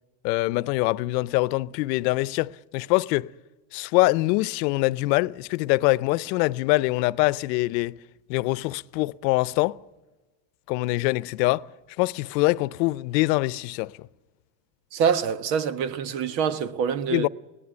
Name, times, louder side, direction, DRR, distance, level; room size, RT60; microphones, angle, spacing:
voice 1, 0.2-3.3 3.7-8.0 8.3-9.8 10.7-11.7 12.0-14.1 17.1-17.3, left 21 dB, 80° left, 0.7 m, -24 dB
voice 2, 14.9-17.3, right 7 dB, 85° right, 1.5 m, -25 dB
23.0 x 18.5 x 9.9 m
supercardioid pair, 120°, 49 cm